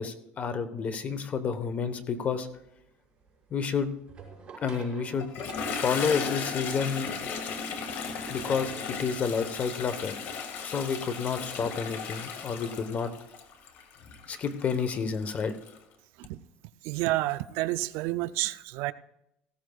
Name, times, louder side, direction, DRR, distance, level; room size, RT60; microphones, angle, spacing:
voice 1, 0.0-2.5 3.5-3.9 4.6-5.3 5.7-7.1 8.3-10.1 10.6-13.1 14.3-15.5, left 6 dB, 35° left, 1.1 m, -30 dB
sound 1, 2.0-10.5, right 5 dB, 25° right, 5.5 m, -53 dB
Toilet flush, 5.2-15.8, left 5 dB, 60° left, 1.9 m, -36 dB
voice 2, 16.8-18.9, right 17 dB, 75° right, 0.4 m, -29 dB
18.0 x 15.0 x 2.4 m
cardioid pair, 125°, 4 cm